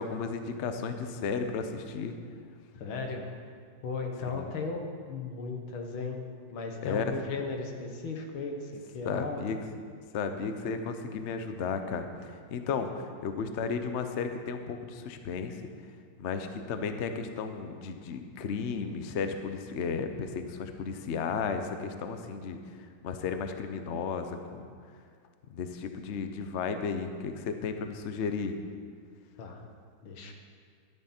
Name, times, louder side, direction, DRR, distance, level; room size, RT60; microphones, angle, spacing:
voice 1, 0.0-2.1 4.2-4.5 6.8-7.1 9.0-9.6 10.1-15.6 16.2-22.8 23.0-24.7 25.5-28.6, left 5 dB, 60° left, 7 dB, 0.7 m, -34 dB
voice 2, 2.7-3.3 3.8-4.8 5.1-6.2 6.5-9.4 29.4-29.6 30.0-30.3, left 4 dB, 85° left, 3 dB, 2.1 m, -36 dB
12.5 x 10.5 x 4.4 m, 2.1 s
omnidirectional pair, 2.2 m